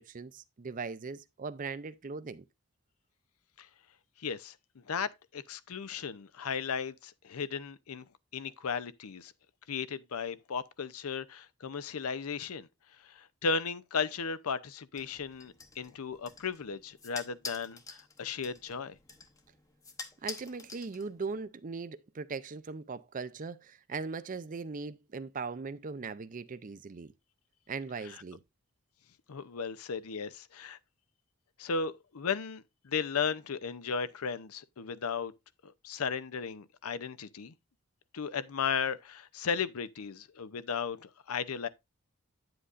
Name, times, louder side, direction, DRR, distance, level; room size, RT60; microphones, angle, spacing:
voice 1, 0.0-2.4 20.2-27.1 27.7-28.4, right 4 dB, 35° right, 0.5 m, -39 dB
voice 2, 4.2-8.0 8.3-9.3 9.7-12.7 13.0-18.9 28.0-28.2 29.3-30.8 31.6-35.3 35.6-37.5 38.1-41.7, left 6 dB, 80° left, 0.6 m, -35 dB
sound 1, 15.0-21.4, left 4 dB, 15° left, 0.8 m, -47 dB
9.6 x 7.8 x 2.5 m
head